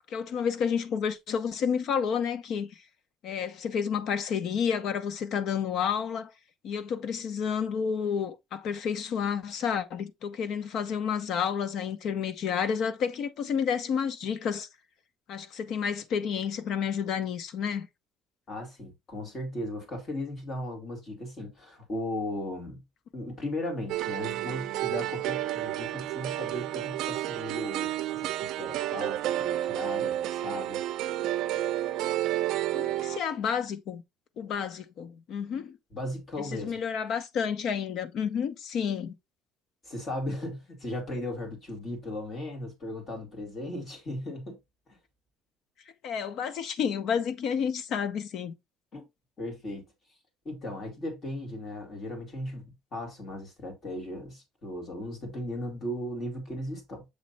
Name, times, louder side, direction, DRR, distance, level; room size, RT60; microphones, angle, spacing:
voice 1, 0.1-2.7 3.2-6.3 6.6-14.7 15.3-17.9 32.7-34.0 34.4-35.7 36.4-39.1 46.0-48.5, left 7 dB, 50° left, 0.8 m, -30 dB
voice 2, 18.5-22.8 23.1-30.8 35.9-36.8 39.8-44.6 44.9-45.0 48.9-49.0 49.4-49.9 50.4-57.0, left 1 dB, 30° left, 2.2 m, -37 dB
sound 1, 23.9-33.2, right 14 dB, 60° right, 0.5 m, -31 dB
7.3 x 3.2 x 4.1 m
cardioid pair, 180°, 0 cm